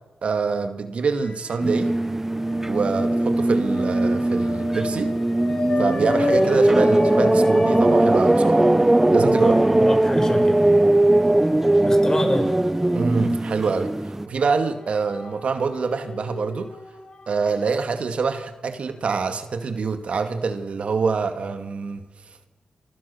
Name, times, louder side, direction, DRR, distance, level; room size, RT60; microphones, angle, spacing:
voice 1, 0.2-1.9 2.7-5.1 5.8-8.6 9.1-9.6 12.9-16.8 17.3-22.0, right 5 dB, 70° right, 8 dB, 2.2 m, -25 dB
sound 1, 1.1-1.9 2.3-12.6 13.0-13.1 14.2-17.6, left 3 dB, 55° left, 4.8 m, -33 dB
sound 2, 1.6-14.3, right 1 dB, 15° right, 0.8 m, -19 dB
voice 2, 9.3-10.7 11.9-12.5, left 2 dB, 25° left, 5 dB, 7.1 m, -28 dB
28.0 x 24.0 x 7.0 m, 1.1 s
cardioid pair, 65°, 2 cm